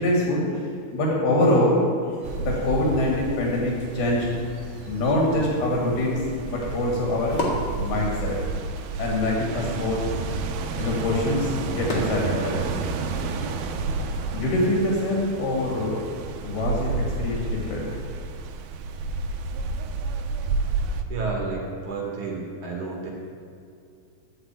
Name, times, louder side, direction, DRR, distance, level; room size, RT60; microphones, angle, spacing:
voice 1, 0.0-4.3 4.6-6.2 6.4-7.4 7.8-8.4 9.0-10.1 10.8-12.8 14.3-16.0 16.4-17.9, left 1 dB, 75° left, -2 dB, 4.0 m, -24 dB
sound 1, 2.2-15.1, left 1 dB, 45° left, 1.4 m, -38 dB
sound 2, 2.2-21.0, right 4 dB, 80° right, 2.5 m, -31 dB
voice 2, 21.1-23.1, right 4 dB, 55° right, -2 dB, 3.0 m, -31 dB
11.5 x 5.9 x 9.1 m, 2.4 s
omnidirectional pair, 4.6 m